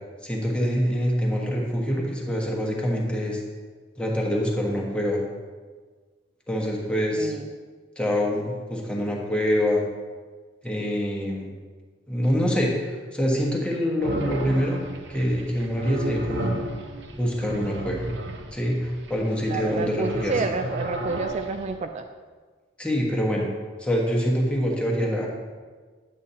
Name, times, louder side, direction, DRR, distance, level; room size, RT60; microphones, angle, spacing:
voice 1, 0.2-3.4 4.0-5.2 6.5-7.3 8.0-9.8 10.6-11.5 12.1-14.8 15.1-16.5 17.2-18.0 18.5-20.3 22.8-23.5 23.8-25.3, equal, 5° left, -2 dB, 1.3 m, -25 dB
sound 1, 14.0-21.8, right 1 dB, 70° right, 0.9 m, -33 dB
voice 2, 19.5-22.0, right 3 dB, 40° right, 6 dB, 0.4 m, -29 dB
9.8 x 8.4 x 2.8 m, 1.4 s
head